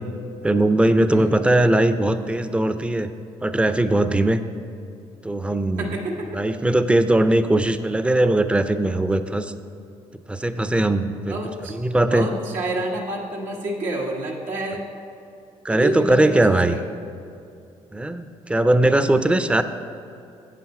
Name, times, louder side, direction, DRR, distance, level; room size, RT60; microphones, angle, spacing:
voice 1, 0.4-3.1 3.4-4.4 5.2-5.9 6.3-9.5 10.3-11.4 11.7-12.3 15.6-16.8 17.9-19.6, right 1 dB, 10° right, 11 dB, 0.5 m, -20 dB
voice 2, 5.8-6.4 11.2-11.8 12.1-14.8 15.7-16.8, right 2 dB, 85° right, -1 dB, 1.2 m, -28 dB
7.9 x 7.4 x 4.7 m, 2.6 s
supercardioid pair, 75°, 13 cm